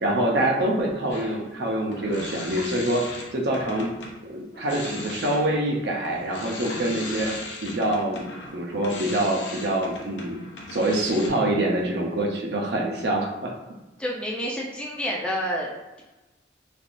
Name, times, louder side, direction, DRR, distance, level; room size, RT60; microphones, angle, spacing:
voice 1, 0.0-3.0 3.3-3.9 4.2-7.3 7.6-10.4 10.7-13.5, right 1 dB, 60° right, -1 dB, 0.6 m, -25 dB
sound 1, 1.1-4.2 4.5-11.3, left 2 dB, 75° left, 0.6 m, -38 dB
voice 2, 14.0-15.7, equal, 5° left, -4 dB, 0.4 m, -28 dB
3.3 x 2.3 x 2.5 m, 1.1 s
head